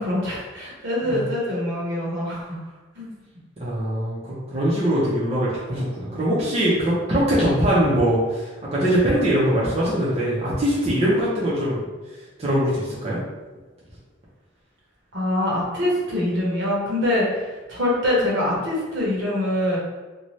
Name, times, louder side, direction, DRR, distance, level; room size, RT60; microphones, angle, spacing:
voice 1, 0.0-2.6 3.0-3.1 15.1-19.8, left 1 dB, 70° right, -5 dB, 1.0 m, -24 dB
voice 2, 3.6-11.9 12.4-13.2, equal, 30° right, -8 dB, 0.6 m, -22 dB
2.7 x 2.3 x 3.1 m, 1.2 s
head